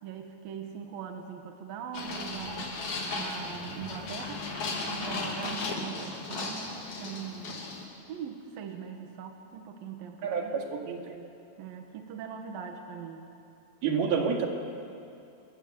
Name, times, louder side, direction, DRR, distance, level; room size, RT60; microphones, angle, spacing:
voice 1, 0.0-2.8 3.1-4.5 4.9-7.5 8.1-10.7 11.6-13.2, right 7 dB, 70° right, 4 dB, 3.1 m, -41 dB
sound 1, 1.9-7.9, left 3 dB, 55° left, 4.1 m, -36 dB
voice 2, 10.2-11.2 13.8-14.5, right 6 dB, 90° right, 2 dB, 4.1 m, -29 dB
27.5 x 21.5 x 8.0 m, 2.6 s
omnidirectional pair, 4.3 m